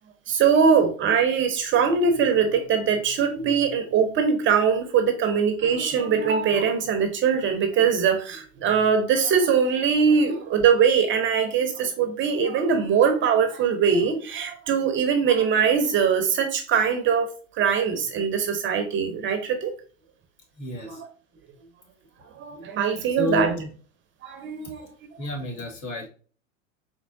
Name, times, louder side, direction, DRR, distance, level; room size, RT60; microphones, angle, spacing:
voice 1, 0.3-17.3 17.6-19.7 20.9-21.0 22.4-23.5 24.2-24.8, right 6 dB, 30° right, 0.7 m, -22 dB
voice 2, 20.6-21.0 23.1-23.7 25.2-26.1, left 2 dB, 45° left, 1.8 m, -30 dB
4.4 x 3.1 x 2.6 m
hypercardioid pair, 105°, 39 cm